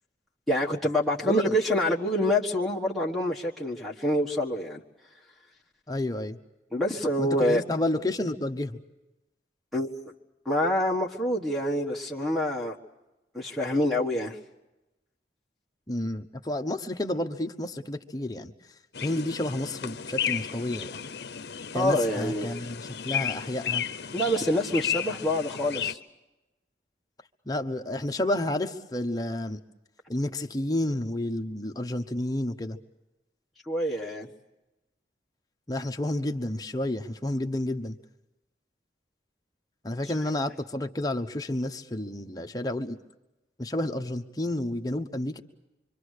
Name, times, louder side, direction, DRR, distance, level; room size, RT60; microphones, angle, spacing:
voice 1, 0.5-4.8 6.7-7.6 9.7-9.9 10.4-12.7 13.3-14.4 21.7-22.5 24.1-26.0 33.7-34.3, left 1 dB, ahead, -5 dB, 1.5 m, -26 dB
voice 2, 1.2-1.6 5.9-6.4 7.2-8.8 15.9-18.5 19.0-21.0 21.7-23.8 27.5-29.6 30.1-32.8 35.7-38.0 39.8-43.0 43.6-45.4, left 1 dB, 20° left, 4 dB, 1.0 m, -30 dB
sound 1, 18.9-25.9, left 8 dB, 70° left, 0.7 m, -33 dB
26.0 x 25.0 x 6.6 m, 0.99 s
head